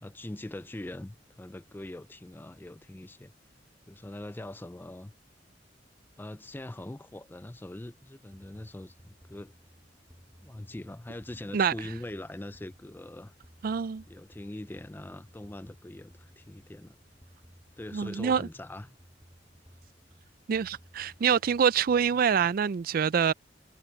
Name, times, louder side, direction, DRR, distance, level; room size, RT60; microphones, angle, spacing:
voice 1, 0.0-3.3 3.9-5.1 6.2-9.5 10.4-13.3 14.1-17.0 17.8-18.9, left 1 dB, 10° left, 0.4 m, -42 dB
sound 1, 8.3-22.6, equal, 15° right, 6.1 m, -58 dB
voice 2, 13.6-14.0 17.9-18.5 20.5-23.3, right 7 dB, 50° right, 0.4 m, -25 dB
head